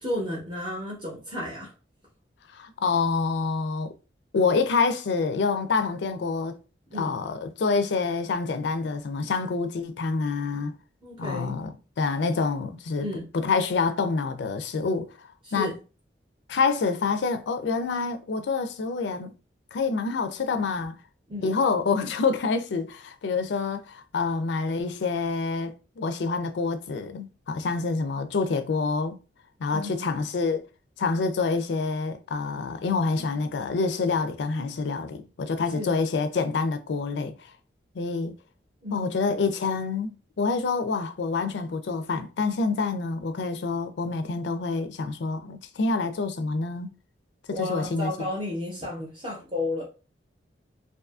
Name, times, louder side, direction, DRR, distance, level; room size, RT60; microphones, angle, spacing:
voice 1, 0.0-1.7 6.9-7.2 11.0-11.6 13.0-13.3 15.4-15.7 21.3-21.6 29.7-30.1 35.7-35.9 38.8-39.2 47.5-49.8, left 1 dB, 25° right, 0.7 m, -33 dB
voice 2, 2.5-3.9 4.3-6.6 6.9-10.7 11.2-13.1 13.3-15.7 16.5-19.3 19.7-21.0 21.4-29.2 29.6-30.6 31.0-37.4 38.0-38.3 38.9-46.9 47.5-48.1, left 4 dB, 70° left, 0.4 m, -27 dB
2.6 x 2.4 x 2.3 m
head